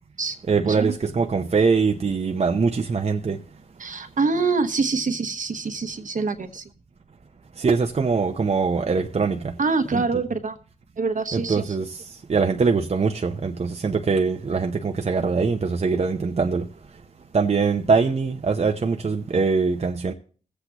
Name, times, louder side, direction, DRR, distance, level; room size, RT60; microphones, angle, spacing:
voice 1, 0.5-3.4 7.6-9.5 9.9-10.0 11.3-16.7 17.3-20.1, right 4 dB, 50° right, 0.7 m, -22 dB
voice 2, 3.8-6.6 9.6-10.6 11.0-11.6, right 4 dB, 65° right, 1.1 m, -25 dB
19.0 x 8.1 x 3.0 m
cardioid pair, 60°, 15 cm